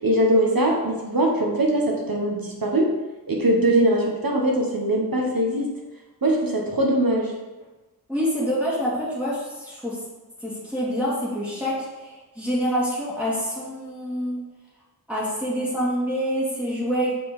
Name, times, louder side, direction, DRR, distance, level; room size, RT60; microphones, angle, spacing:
voice 1, 0.0-2.9 3.3-5.7 6.2-7.3, right 1 dB, 65° right, -1 dB, 1.3 m, -21 dB
voice 2, 8.1-10.0 10.4-14.4 15.1-17.1, equal, 5° right, -8 dB, 2.1 m, -26 dB
7.2 x 4.6 x 3.7 m, 1.2 s
wide cardioid pair, 45°, 38 cm